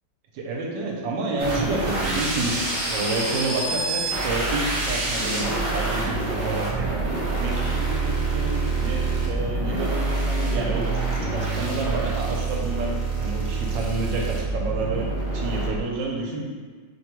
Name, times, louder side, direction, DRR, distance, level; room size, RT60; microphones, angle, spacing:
voice 1, 0.3-7.0 7.4-16.4, right 2 dB, 80° right, -1 dB, 1.3 m, -29 dB
sound 1, 1.4-15.8, right 3 dB, 60° right, 0.6 m, -26 dB
sound 2, 6.8-8.3, left 1 dB, 85° left, 1.4 m, -44 dB
4.9 x 2.2 x 3.0 m, 1.5 s
omnidirectional pair, 2.1 m